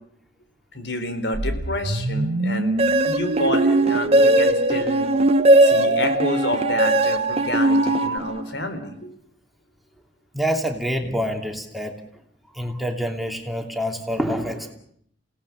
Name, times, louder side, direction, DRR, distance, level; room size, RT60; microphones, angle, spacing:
voice 1, 0.7-5.1 5.6-9.1, left 1 dB, 75° left, 9 dB, 4.1 m, -29 dB
sound 1, 1.3-8.2, right 2 dB, 90° right, 1.5 m, -26 dB
sound 2, 2.8-8.6, right 1 dB, 35° right, 1.3 m, -19 dB
voice 2, 10.3-11.9 12.5-14.7, equal, ahead, 3 dB, 2.8 m, -26 dB
28.5 x 18.0 x 8.6 m, 0.68 s
head